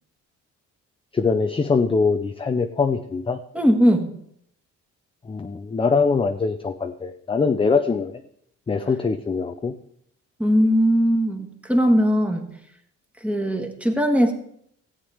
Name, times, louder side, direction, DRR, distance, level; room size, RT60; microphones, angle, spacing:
voice 1, 1.1-3.4 5.3-8.1 8.7-9.7, left 4 dB, 20° left, 7 dB, 0.5 m, -22 dB
voice 2, 3.5-4.1 10.4-12.5 13.2-14.3, equal, 5° right, 2 dB, 1.5 m, -19 dB
14.5 x 8.2 x 3.5 m, 0.69 s
cardioid pair, 90°, 30 cm